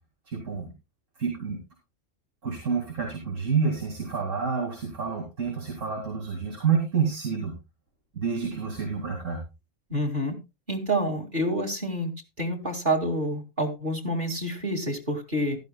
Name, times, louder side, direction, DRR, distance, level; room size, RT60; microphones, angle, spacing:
voice 1, 0.3-0.7 1.2-1.6 2.4-7.5 8.1-9.4, right 6 dB, 80° right, 1 dB, 2.6 m, -28 dB
voice 2, 9.9-10.3 10.7-12.1 12.4-15.6, right 1 dB, 40° right, 6 dB, 2.4 m, -28 dB
15.0 x 12.0 x 2.2 m, 0.25 s
omnidirectional pair, 1.3 m